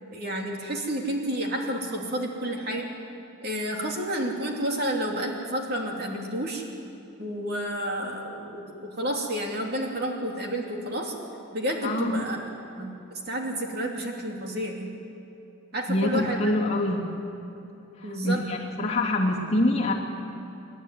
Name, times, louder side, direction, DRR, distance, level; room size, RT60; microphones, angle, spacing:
voice 1, 0.1-2.9 3.4-6.6 7.2-11.1 11.5-12.4 12.7-14.9 15.7-16.4 18.0-18.4, right 1 dB, 45° right, 0 dB, 3.0 m, -30 dB
voice 2, 11.8-12.2 15.9-17.1 18.0-19.9, left 1 dB, 30° left, -3 dB, 2.8 m, -25 dB
28.5 x 12.0 x 9.6 m, 2.8 s
head